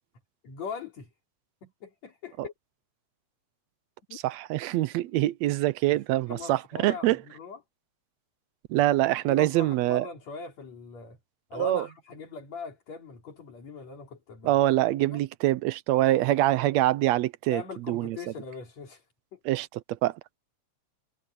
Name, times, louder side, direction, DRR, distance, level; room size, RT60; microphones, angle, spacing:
voice 1, 0.4-1.1 1.6-2.5 4.1-4.2 6.3-7.6 9.3-11.2 11.5-14.6 15.0-15.2 17.5-19.0 19.3-19.4, left 5 dB, 65° left, 4.5 m, -41 dB
voice 2, 4.1-7.2 8.7-10.1 11.5-11.9 14.4-18.2 19.4-20.2, right 15 dB, 75° right, 1.7 m, -25 dB
omnidirectional pair, 3.3 m